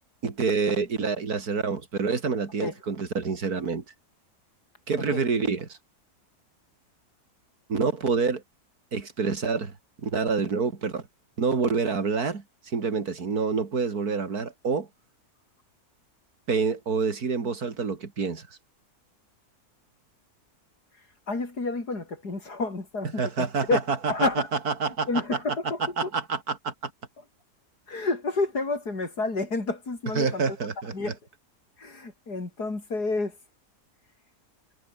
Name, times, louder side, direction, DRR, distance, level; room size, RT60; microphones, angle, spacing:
voice 1, 0.2-3.8 4.9-5.8 7.7-8.4 8.9-9.7 10.0-11.0 11.4-14.9 16.5-18.4 23.2-24.3 24.7-25.1 26.0-26.9 30.2-31.1, right 5 dB, 70° right, 3.1 m, -27 dB
voice 2, 21.3-23.3 23.7-23.8 24.1-24.5 25.1-26.1 27.2-27.3 27.9-30.4 30.9-31.2 31.8-33.4, left 3 dB, 85° left, 5.3 m, -29 dB
omnidirectional pair, 1.7 m